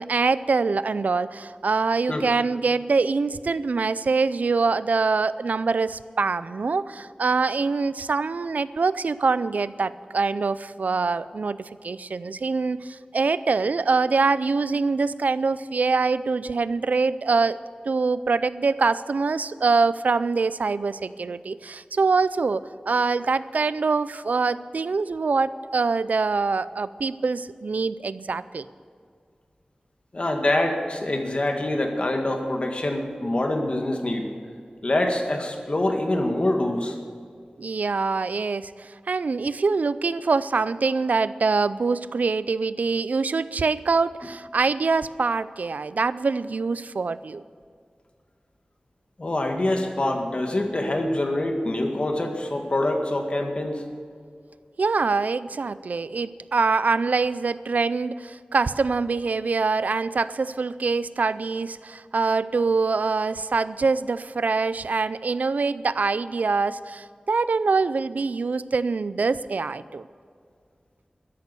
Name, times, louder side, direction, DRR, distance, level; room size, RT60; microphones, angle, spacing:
voice 1, 0.0-17.6 17.9-28.6 37.6-47.4 54.8-70.1, right 4 dB, 80° right, 16 dB, 0.4 m, -24 dB
voice 2, 30.1-34.3 34.8-37.0 49.2-53.8, left 1 dB, 45° left, 3 dB, 1.9 m, -25 dB
13.5 x 10.5 x 6.9 m, 2.2 s
wide cardioid pair, 80°, 3 cm